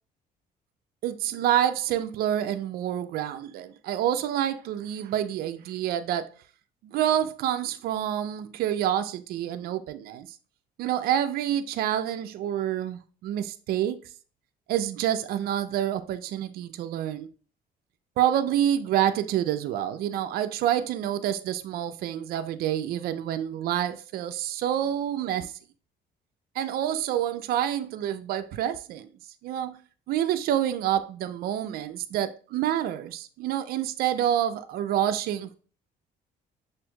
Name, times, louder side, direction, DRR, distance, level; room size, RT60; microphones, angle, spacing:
voice 1, 1.0-6.3 6.8-10.3 10.8-14.0 14.7-17.3 18.2-25.5 26.6-29.1 29.4-29.8 30.1-35.6, right 11 dB, 65° right, 0.4 m, -27 dB
6.0 x 2.5 x 2.3 m
cardioid pair, 110°, 17 cm